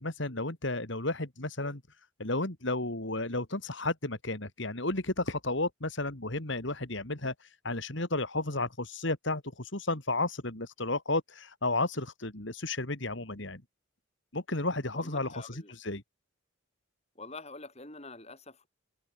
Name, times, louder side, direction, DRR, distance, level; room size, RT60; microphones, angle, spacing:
voice 1, 0.0-1.8 2.2-13.6 14.3-16.0, left 2 dB, 60° left, 2.8 m, -33 dB
voice 2, 14.9-15.7 17.1-18.7, left 3 dB, 30° left, 6.6 m, -46 dB
head